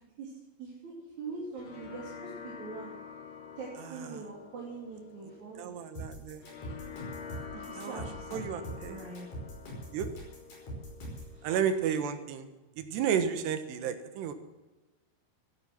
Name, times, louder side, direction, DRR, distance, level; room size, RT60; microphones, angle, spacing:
voice 1, 0.6-2.9 3.6-5.7 7.5-9.3 11.3-11.6, right 4 dB, 50° right, -4 dB, 3.9 m, -43 dB
sound 1, 1.3-12.2, left 6 dB, 80° left, 4.5 m, -48 dB
voice 2, 5.6-6.4 7.8-8.0 8.3-9.0 9.9-10.1 11.4-12.5 12.8-14.3, right 8 dB, 85° right, 9 dB, 3.4 m, -32 dB
sound 2, 6.0-11.3, equal, 45° left, 6.5 m, -42 dB
14.5 x 11.5 x 7.6 m, 1.1 s
omnidirectional pair, 4.8 m